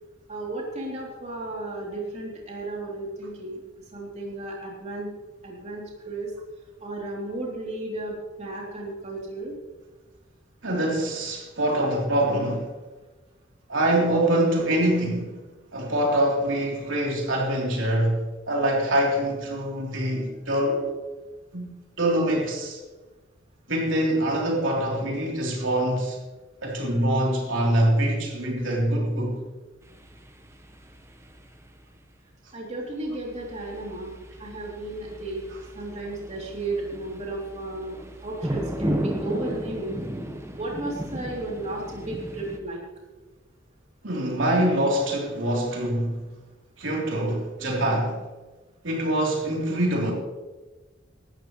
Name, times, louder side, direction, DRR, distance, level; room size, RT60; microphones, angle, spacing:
voice 1, 0.3-3.6 3.9-5.1 5.4-6.3 6.8-9.6 32.5-34.1 34.4-35.4 35.7-37.9 38.2-40.0 40.6-42.8, right 2 dB, 35° right, 3.1 m, -34 dB
voice 2, 10.6-12.7 13.7-15.3 15.7-20.9 21.5-21.7 22.0-22.8 23.7-26.2 26.6-29.4 44.0-46.1 46.8-48.2 48.8-50.1, right 1 dB, 75° right, 3.5 m, -24 dB
sound 1, 29.8-31.7 33.1-42.6, equal, 15° right, 1.1 m, -35 dB
18.0 x 13.0 x 3.2 m
head